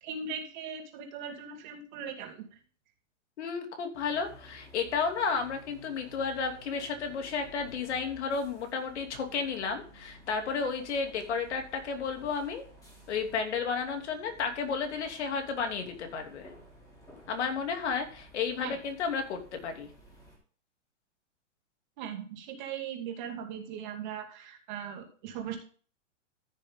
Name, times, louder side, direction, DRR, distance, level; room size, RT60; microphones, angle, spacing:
voice 1, 0.0-2.4 18.6-18.8 22.0-25.6, right 7 dB, 35° right, 3 dB, 2.5 m, -39 dB
voice 2, 3.4-12.6 13.1-16.5 17.3-19.9, left 5 dB, 60° left, 4 dB, 2.9 m, -32 dB
sound 1, 3.9-20.4, equal, 10° left, 3.2 m, -54 dB
14.0 x 6.5 x 3.7 m, 0.41 s
hypercardioid pair, 165°, 38 cm